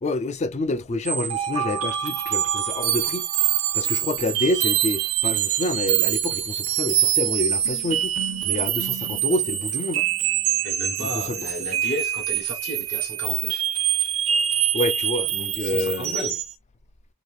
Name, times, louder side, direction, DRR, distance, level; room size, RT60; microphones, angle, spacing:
voice 1, 0.0-3.3 3.7-8.2 8.4-10.1 11.0-11.4 14.7-16.3, left 2 dB, 30° left, 0.4 m, -28 dB
sound 1, 1.1-16.5, right 11 dB, 75° right, 0.6 m, -25 dB
voice 2, 10.6-13.6 15.6-16.3, left 1 dB, 55° left, 1.2 m, -34 dB
4.0 x 2.6 x 3.3 m
head